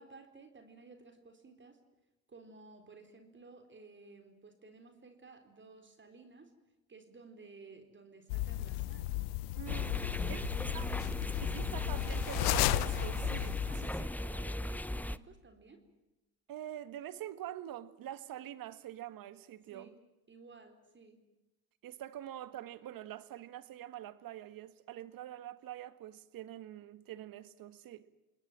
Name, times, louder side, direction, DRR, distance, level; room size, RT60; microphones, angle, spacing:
voice 1, 0.0-1.8 2.3-6.5 6.9-9.1 9.9-11.8 13.6-15.8 19.7-20.0 20.3-21.2, right 3 dB, 30° right, 4.3 m, -55 dB
sound 1, 8.3-13.9, left 17 dB, 90° left, 0.9 m, -34 dB
voice 2, 9.6-10.0 10.3-10.4 10.7-10.9 11.4-13.9 16.5-19.9 21.8-28.1, right 12 dB, 65° right, 1.8 m, -45 dB
sound 2, 9.7-15.2, left 1 dB, 5° left, 0.8 m, -37 dB
28.5 x 20.5 x 7.6 m
supercardioid pair, 85°, 37 cm